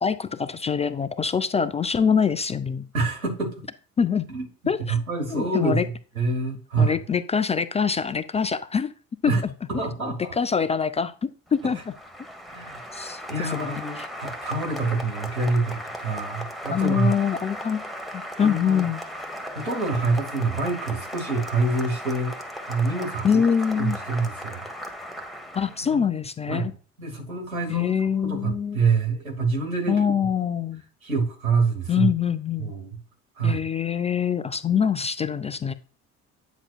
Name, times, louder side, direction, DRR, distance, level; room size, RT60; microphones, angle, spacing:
voice 1, 0.0-2.8 4.0-4.2 4.7-5.0 5.3-5.8 6.8-8.9 9.2-9.4 10.3-11.9 12.9-14.1 16.7-17.9 18.1-19.0 23.2-24.0 25.5-26.7 27.7-28.8 29.9-30.8 31.9-32.7 33.4-35.7, left 7 dB, 15° left, 0.3 m, -24 dB
voice 2, 2.9-3.6 4.3-4.5 4.9-5.8 6.1-6.9 9.3-9.4 9.7-10.4 11.6-11.7 12.5-12.8 13.3-17.1 18.4-18.9 19.5-22.3 22.7-23.4 23.7-24.6 25.9-26.0 26.5-26.7 27.0-30.0 31.0-32.1 32.6-33.0 33.4-33.6, right 3 dB, 85° right, 1.4 m, -26 dB
Applause, 11.5-25.9, equal, ahead, 1.5 m, -37 dB
9.6 x 5.9 x 2.4 m
figure-of-eight pair, 50°, 40 cm